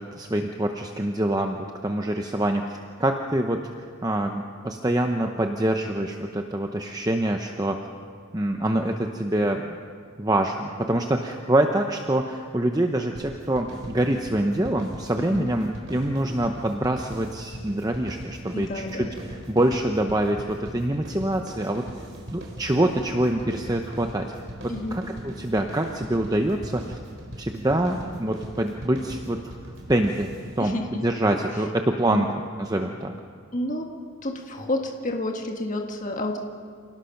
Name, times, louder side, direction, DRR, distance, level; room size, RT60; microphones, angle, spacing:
voice 1, 0.0-7.9 8.3-9.8 10.2-21.8 22.3-24.3 24.6-27.0 27.4-29.5 29.9-30.3 30.6-32.3 32.6-33.1, right 1 dB, 15° right, 4 dB, 0.8 m, -25 dB
sound 1, 13.2-30.6, equal, 60° right, 4.4 m, -40 dB
voice 2, 15.2-15.5 18.5-19.1 24.7-25.0 30.6-30.8 31.5-31.6 32.0-32.3 33.5-33.9 34.2-36.4, left 1 dB, 35° left, 2 dB, 1.6 m, -29 dB
27.5 x 18.5 x 5.9 m, 2.2 s
head